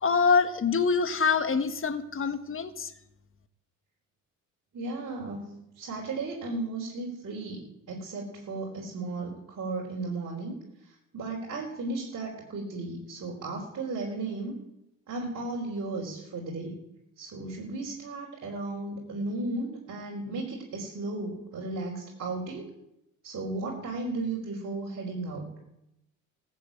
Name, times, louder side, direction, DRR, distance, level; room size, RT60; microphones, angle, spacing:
voice 1, 0.0-2.9, left 5 dB, 35° left, 11 dB, 1.4 m, -25 dB
voice 2, 4.7-10.6 11.1-14.6 15.1-16.8 17.2-22.7 23.2-25.5, right 2 dB, 50° right, -4 dB, 4.2 m, -35 dB
15.0 x 7.6 x 8.8 m, 0.84 s
supercardioid pair, 80°, 36 cm